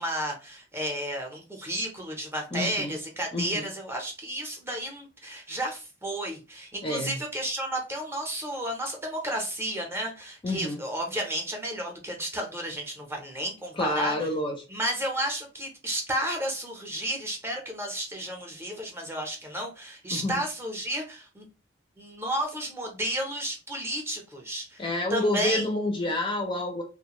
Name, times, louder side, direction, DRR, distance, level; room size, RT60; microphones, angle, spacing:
voice 1, 0.0-14.1 14.7-21.5 22.0-24.8 25.1-25.7, right 1 dB, 10° right, 1 dB, 0.7 m, -32 dB
voice 2, 2.5-2.9 3.3-3.7 6.8-7.2 10.4-10.8 13.7-14.6 20.1-20.4 24.8-26.8, left 1 dB, 25° left, 2 dB, 0.4 m, -28 dB
2.4 x 2.2 x 2.9 m, 0.30 s
head